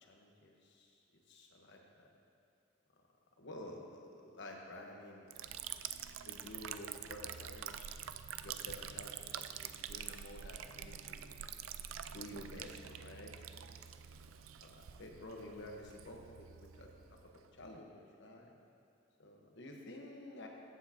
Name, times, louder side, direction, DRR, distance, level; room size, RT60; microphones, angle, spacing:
voice 1, 0.0-1.0 1.3-2.1 3.4-5.6 6.2-8.0 8.4-11.3 12.1-13.8 14.6-17.2 17.5-18.6 19.2-20.5, left 1 dB, 60° left, 1 dB, 1.3 m, -51 dB
Liquid, 5.3-17.8, right 9 dB, 75° right, 0.4 m, -47 dB
14.5 x 8.4 x 2.9 m, 2.6 s
head